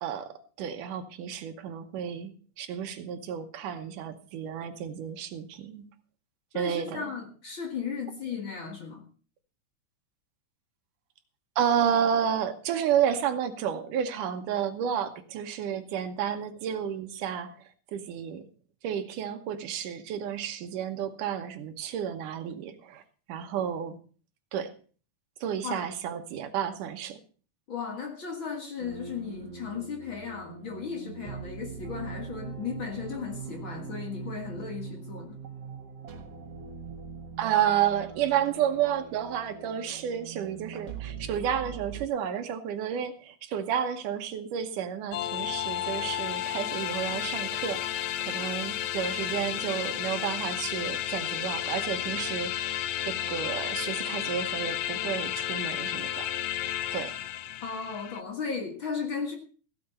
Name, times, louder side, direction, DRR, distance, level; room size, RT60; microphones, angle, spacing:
voice 1, 0.0-5.9 6.5-7.0 11.6-18.4 18.8-23.0 23.3-24.0 24.5-24.7 25.4-27.2 37.4-56.3 56.9-57.1, right 9 dB, 80° right, 8 dB, 2.6 m, -31 dB
voice 2, 6.5-9.1 25.6-25.8 27.7-35.4 57.6-59.4, left 6 dB, 45° left, 3 dB, 2.1 m, -36 dB
sound 1, 28.8-42.1, right 7 dB, 55° right, 2.3 m, -42 dB
sound 2, 45.1-58.2, left 12 dB, 75° left, 1.9 m, -32 dB
15.5 x 8.5 x 5.4 m, 0.39 s
omnidirectional pair, 3.7 m